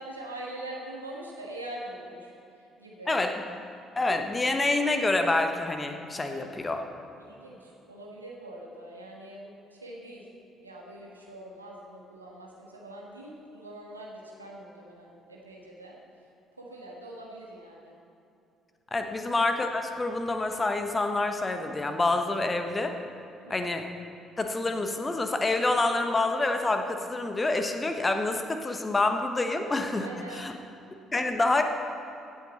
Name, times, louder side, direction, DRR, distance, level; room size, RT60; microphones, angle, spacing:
voice 1, 0.0-3.2 6.2-6.8 7.2-10.2 10.6-15.9 16.6-17.9 19.0-19.1 23.4-23.6 29.9-30.4, right 1 dB, 85° right, -3 dB, 1.4 m, -43 dB
voice 2, 4.0-6.8 18.9-23.0 23.5-23.9 24.4-30.1 30.3-30.5 31.1-31.6, left 2 dB, 20° left, 6 dB, 1.0 m, -27 dB
16.0 x 8.0 x 4.2 m, 2.8 s
figure-of-eight pair, 50°, 0 cm